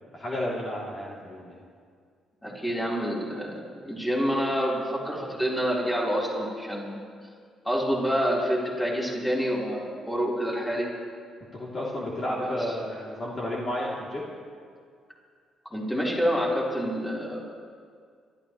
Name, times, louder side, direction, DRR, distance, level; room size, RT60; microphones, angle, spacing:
voice 1, 0.1-1.6 11.5-14.3, left 1 dB, 40° left, -5 dB, 3.1 m, -32 dB
voice 2, 2.4-7.0 7.6-10.9 12.3-12.8 15.7-17.5, equal, 10° left, -5 dB, 4.3 m, -27 dB
27.0 x 13.0 x 3.3 m, 2.1 s
cardioid pair, 90°, 0 cm